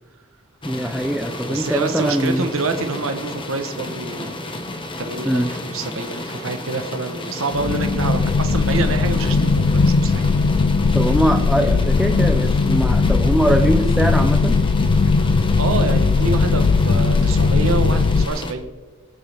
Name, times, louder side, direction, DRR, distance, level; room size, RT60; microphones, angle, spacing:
sound 1, 0.6-18.5, left 1 dB, 25° left, 1.4 m, -32 dB
voice 1, 0.6-2.5 5.3-5.5 10.9-14.6, equal, ahead, 4 dB, 0.6 m, -21 dB
voice 2, 1.5-4.4 5.0-10.4 15.6-18.7, right 3 dB, 75° right, 7 dB, 1.2 m, -27 dB
sound 2, 7.5-18.3, left 4 dB, 60° left, 0.4 m, -18 dB
24.5 x 9.1 x 3.5 m, 1.3 s
head